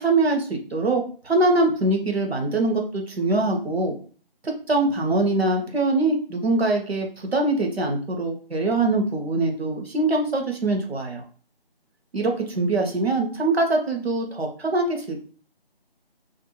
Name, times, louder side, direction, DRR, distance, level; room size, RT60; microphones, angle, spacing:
voice 1, 0.0-4.0 4.4-11.2 12.1-15.2, right 2 dB, 80° right, 3 dB, 0.9 m, -23 dB
2.5 x 2.2 x 2.9 m, 0.42 s
figure-of-eight pair, 175°, 31 cm